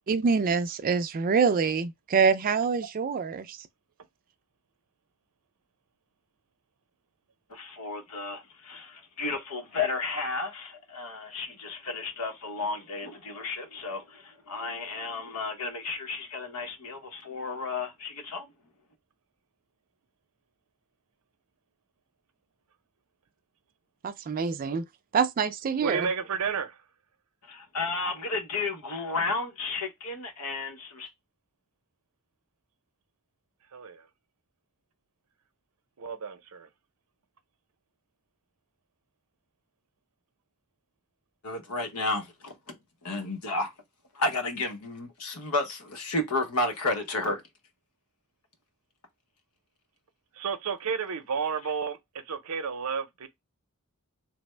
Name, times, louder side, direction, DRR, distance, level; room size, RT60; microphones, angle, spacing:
voice 1, 0.1-3.7 24.0-24.8 25.1-26.1, right 5 dB, 40° right, 0.3 m, -25 dB
voice 2, 7.5-18.5 27.5-31.1 41.4-42.8 43.0-43.7 44.1-47.4, left 3 dB, 85° left, 0.9 m, -32 dB
voice 3, 25.8-26.8 33.7-34.1 36.0-36.7 50.3-53.3, right 6 dB, 80° right, 0.6 m, -32 dB
3.3 x 2.1 x 3.2 m
head